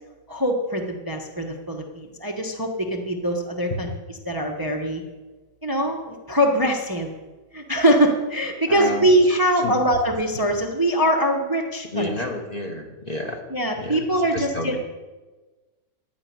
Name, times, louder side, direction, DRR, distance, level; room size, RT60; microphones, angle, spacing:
voice 1, 0.3-3.9 4.2-5.0 5.6-7.1 7.5-12.1 13.5-14.8, right 1 dB, 15° right, 1 dB, 1.0 m, -22 dB
voice 2, 8.7-9.8 11.9-13.4 13.7-14.8, left 1 dB, 30° left, 1 dB, 1.4 m, -31 dB
13.5 x 5.8 x 9.4 m, 1.2 s
omnidirectional pair, 1.6 m